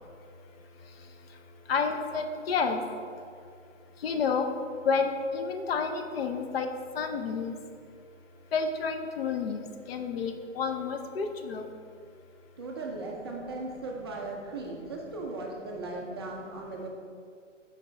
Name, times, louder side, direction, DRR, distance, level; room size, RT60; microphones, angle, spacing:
voice 1, 1.7-2.8 4.0-4.4 4.8-6.7 7.0-7.6 8.5-11.7, left 5 dB, 50° left, 6 dB, 0.6 m, -30 dB
voice 2, 12.6-16.9, right 2 dB, 20° right, -1 dB, 0.4 m, -37 dB
6.5 x 4.9 x 3.2 m, 2.3 s
hypercardioid pair, 135°, 38 cm